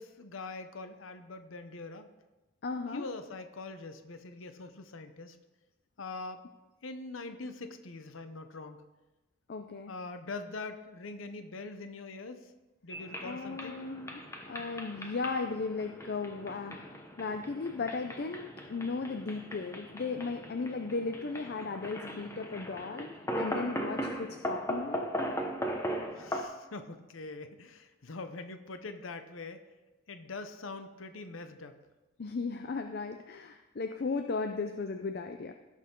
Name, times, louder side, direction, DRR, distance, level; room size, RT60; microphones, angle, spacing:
voice 1, 0.0-2.1 2.9-5.4 6.0-6.4 6.8-8.8 9.9-12.5 12.8-13.8 26.1-29.6 30.1-31.8, left 3 dB, 85° left, 8 dB, 0.8 m, -43 dB
voice 2, 2.6-3.1 9.5-9.9 13.2-14.2 14.5-23.1 23.4-25.1 32.2-35.5, left 4 dB, 50° left, 6 dB, 0.5 m, -36 dB
sound 1, 12.9-26.4, equal, 15° left, 1.0 m, -39 dB
17.0 x 6.6 x 3.8 m, 1.1 s
head